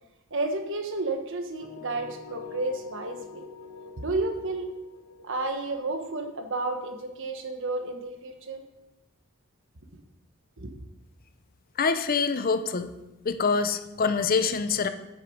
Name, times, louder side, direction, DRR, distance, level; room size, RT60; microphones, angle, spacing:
voice 1, 0.3-3.4 4.0-4.7 5.2-8.6 10.6-10.7, right 2 dB, 60° right, 5 dB, 1.3 m, -31 dB
sound 1, 1.6-7.4, left 4 dB, 85° left, 2.1 m, -46 dB
voice 2, 11.8-12.9 13.2-14.9, left 5 dB, 40° left, 10 dB, 0.6 m, -25 dB
9.1 x 8.9 x 5.1 m, 0.96 s
head